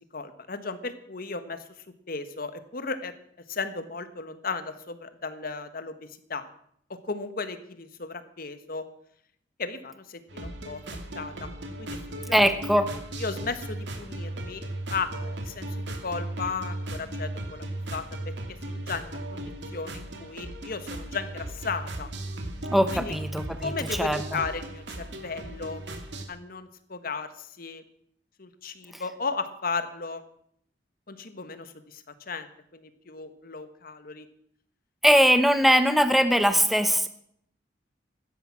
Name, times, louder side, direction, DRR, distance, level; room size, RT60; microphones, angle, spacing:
voice 1, 0.0-1.6 2.1-3.1 3.5-6.5 6.9-8.8 9.6-10.8 11.1-11.5 11.8-12.0 12.3-12.6 13.2-14.6 14.9-15.7 16.0-19.4 19.7-22.1 22.9-23.1 23.5-25.8 26.3-27.8 28.4-30.2 31.1-34.3, left 4 dB, 55° left, 11 dB, 1.5 m, -35 dB
sound 1, 10.3-26.2, right 1 dB, 80° right, 2.6 m, -36 dB
voice 2, 12.3-12.9 22.7-23.7 24.0-24.2 35.0-37.1, equal, ahead, 9 dB, 0.8 m, -21 dB
16.0 x 13.0 x 6.1 m, 0.68 s
head